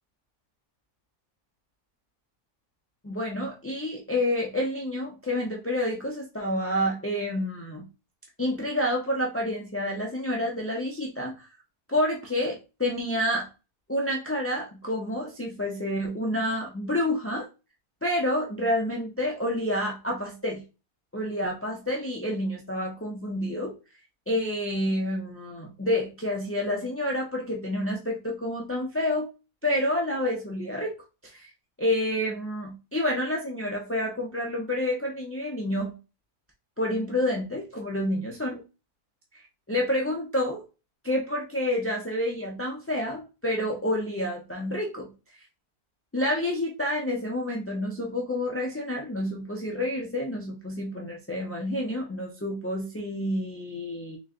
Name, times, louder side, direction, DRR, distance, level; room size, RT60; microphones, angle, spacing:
voice 1, 3.0-7.9 8.4-11.5 11.9-13.5 13.9-17.5 18.0-20.6 21.1-23.8 24.3-29.3 29.6-30.9 31.2-31.5 31.8-35.9 36.8-38.6 39.7-40.6 41.0-45.1 46.1-54.2, left 1 dB, 20° left, -1 dB, 0.3 m, -29 dB
3.3 x 3.1 x 3.7 m, 0.29 s
omnidirectional pair, 1.6 m